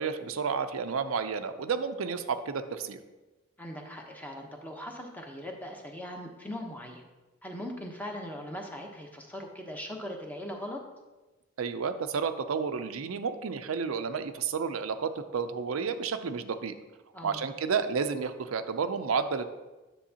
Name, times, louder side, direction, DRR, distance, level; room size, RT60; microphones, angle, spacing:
voice 1, 0.0-3.0 11.6-16.7 17.2-19.5, right 5 dB, 90° right, 9 dB, 0.5 m, -31 dB
voice 2, 3.6-7.0 7.4-10.8 17.1-17.4, left 1 dB, 10° left, 1 dB, 0.9 m, -40 dB
10.0 x 6.9 x 2.9 m, 1.1 s
head